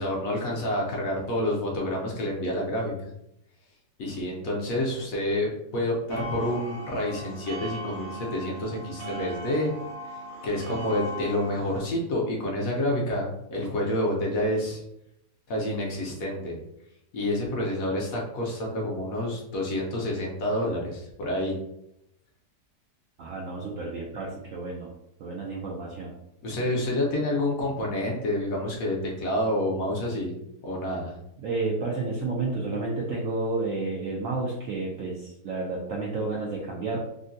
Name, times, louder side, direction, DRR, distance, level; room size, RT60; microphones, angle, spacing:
voice 1, 0.0-2.9 4.0-9.7 10.1-14.8 15.5-16.6 17.1-21.6 26.4-30.3 30.6-31.2, left 1 dB, 65° left, -2 dB, 1.0 m, -28 dB
sound 1, 6.1-11.8, equal, 90° right, 1.5 m, -38 dB
voice 2, 23.2-24.9 25.2-26.1 31.4-37.0, right 3 dB, 75° right, -3 dB, 0.7 m, -31 dB
3.7 x 2.1 x 2.6 m, 0.81 s
omnidirectional pair, 1.8 m